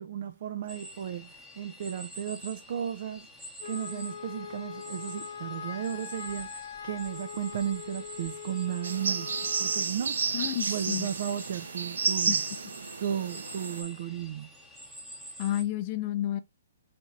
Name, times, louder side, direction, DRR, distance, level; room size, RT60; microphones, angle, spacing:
voice 1, 0.0-3.3 3.6-10.3 10.7-12.4 13.0-14.5, right 10 dB, 40° right, 0.4 m, -34 dB
sound 1, 0.7-15.6, equal, ahead, 1.0 m, -46 dB
Wind instrument woodwind instrument, 3.6-9.9, left 7 dB, 70° left, 0.8 m, -42 dB
sound 2, 8.8-13.8, right 5 dB, 85° right, 0.7 m, -31 dB
voice 2, 10.3-11.1 12.3-12.4 15.4-16.4, left 12 dB, 25° left, 0.5 m, -30 dB
4.4 x 4.2 x 2.4 m
hypercardioid pair, 170°, 0 cm